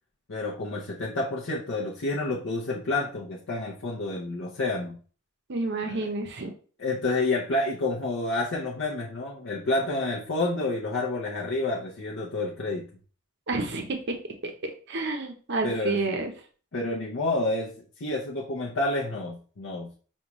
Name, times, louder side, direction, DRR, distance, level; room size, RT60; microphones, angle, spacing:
voice 1, 0.3-5.0 5.8-6.1 6.8-12.8 15.6-16.0 16.7-17.7 18.0-19.9, left 2 dB, 65° left, -5 dB, 0.6 m, -29 dB
voice 2, 5.5-6.5 13.5-14.2 14.4-16.3, right 3 dB, 50° right, 4 dB, 0.6 m, -30 dB
5.3 x 2.3 x 3.0 m, 0.40 s
head